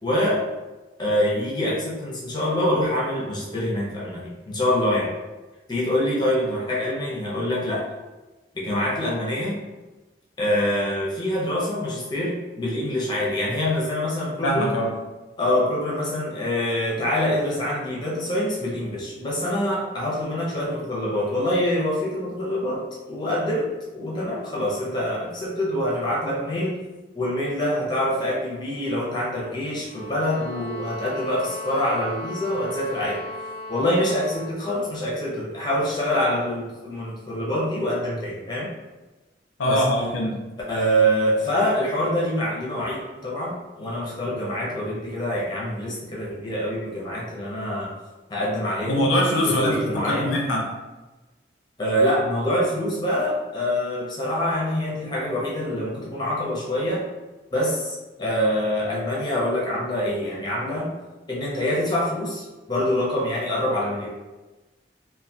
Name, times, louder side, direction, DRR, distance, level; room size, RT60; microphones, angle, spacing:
voice 1, 0.0-0.4 1.0-5.1 5.7-7.8 8.5-9.6 10.4-14.7 15.4-23.7 23.9-26.8 27.1-33.2 33.7-38.7 39.6-39.8 40.7-47.9 48.3-49.0 49.4-50.3 51.8-57.1 57.5-60.9 61.3-64.1, left 1 dB, 25° left, -5 dB, 0.5 m, -25 dB
voice 2, 14.4-14.9 39.6-40.4 48.9-50.6, equal, 85° left, -2 dB, 0.4 m, -22 dB
sound 1, 29.8-34.6, left 1 dB, 55° right, 0.5 m, -37 dB
2.2 x 2.1 x 2.6 m, 1.2 s
head